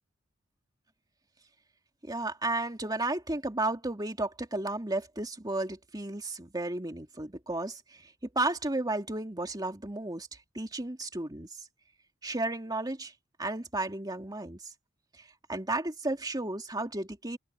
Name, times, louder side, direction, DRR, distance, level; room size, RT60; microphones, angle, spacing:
voice 1, 2.0-10.3 10.5-11.5 12.2-13.1 13.4-14.6 15.5-17.4, right 2 dB, 20° right, 2.7 m, -33 dB
open air
head